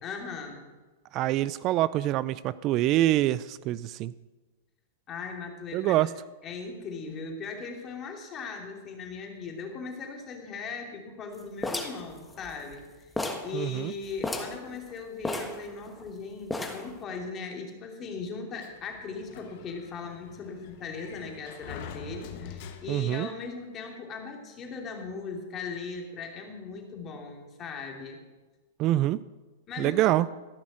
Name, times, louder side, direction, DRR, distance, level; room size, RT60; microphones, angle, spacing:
voice 1, 0.0-0.7 5.1-6.1 6.4-13.1 13.4-28.2 29.7-30.1, left 4 dB, 30° left, 2 dB, 2.8 m, -39 dB
voice 2, 1.1-4.1 5.7-6.1 13.5-13.9 22.9-23.3 28.8-29.2 29.8-30.3, right 14 dB, 40° right, 18 dB, 0.3 m, -25 dB
sound 1, 11.6-12.8 13.2-13.5 13.8-13.9 14.2-14.6 15.2-16.1 16.5-17.0, left 2 dB, 5° left, 1.5 m, -33 dB
Sliding door, 18.6-23.2, left 6 dB, 55° left, 1.4 m, -45 dB
14.5 x 6.2 x 7.7 m, 1.2 s
hypercardioid pair, 120°, 0 cm